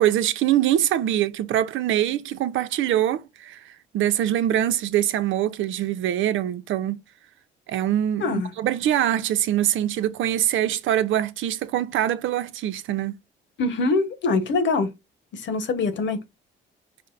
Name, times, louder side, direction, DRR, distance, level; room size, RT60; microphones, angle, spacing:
voice 1, 0.0-7.0 7.7-13.2, right 11 dB, 75° right, 0.6 m, -23 dB
voice 2, 13.6-14.9 15.3-16.2, left 3 dB, 70° left, 1.1 m, -23 dB
5.3 x 2.0 x 3.9 m
cardioid pair, 90°, 20 cm